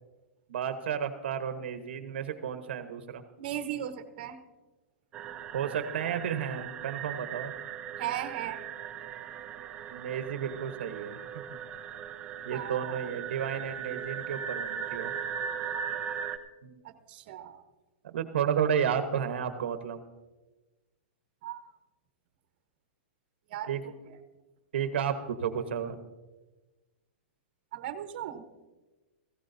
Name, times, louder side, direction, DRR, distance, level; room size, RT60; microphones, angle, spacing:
voice 1, 0.5-3.2 5.5-7.5 9.9-11.6 12.4-15.1 16.6-16.8 18.0-20.0 23.7-23.8 24.7-26.0, right 8 dB, 75° right, 8 dB, 1.1 m, -32 dB
voice 2, 3.4-4.4 8.0-8.6 12.5-13.0 16.8-17.6 21.4-21.7 23.5-23.7 27.7-28.5, right 11 dB, 50° right, 8 dB, 1.1 m, -37 dB
sound 1, 5.1-16.4, right 8 dB, 20° right, 0.7 m, -38 dB
18.5 x 15.5 x 2.7 m, 1.2 s
supercardioid pair, 160°, 6 cm